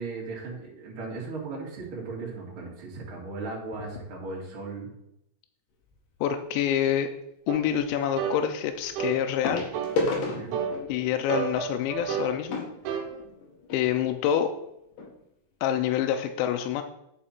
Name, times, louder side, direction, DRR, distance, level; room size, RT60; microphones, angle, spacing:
voice 1, 0.0-4.9 10.4-10.6, right 3 dB, 35° right, -4 dB, 2.6 m, -37 dB
sound 1, 5.9-6.2 7.8-7.9 9.4-13.8 14.6-14.7 14.9-15.1 15.6-15.7, left 3 dB, 60° left, 2.8 m, -33 dB
voice 2, 6.2-7.1 7.5-9.7 10.9-12.7 13.7-14.5 15.6-16.8, left 9 dB, 80° left, 6 dB, 2.8 m, -26 dB
sound 2, 7.5-7.6 8.2-8.4 9.0-9.2 9.7-10.0 10.5-10.8 11.3-12.3 12.8-13.1, right 7 dB, 75° right, 3.5 m, -30 dB
9.1 x 6.4 x 4.4 m, 0.81 s
omnidirectional pair, 5.4 m